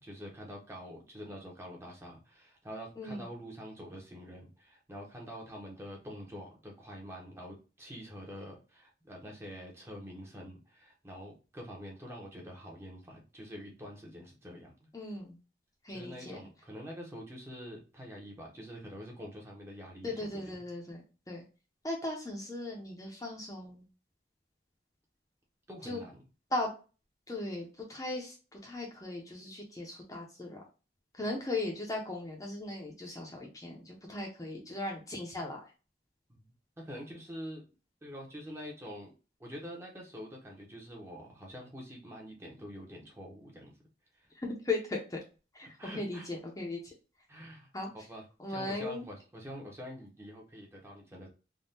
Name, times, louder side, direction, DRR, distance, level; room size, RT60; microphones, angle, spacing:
voice 1, 0.0-14.9 15.9-20.6 25.7-26.2 36.3-36.4 36.8-37.6 38.0-39.1 39.4-43.7 44.1-44.3 45.8-46.3 47.3-51.3, equal, 15° right, -1 dB, 0.7 m, -46 dB
voice 2, 3.0-3.3 14.9-15.4 15.8-16.4 20.0-21.4 21.8-23.8 25.8-26.0 26.5-26.7 27.3-30.6 31.2-35.6 44.3-45.2 45.5-45.7 46.0-46.8 47.7-47.9 48.4-49.0, left 2 dB, 20° left, -1 dB, 0.6 m, -37 dB
3.5 x 2.2 x 2.6 m, 0.33 s
head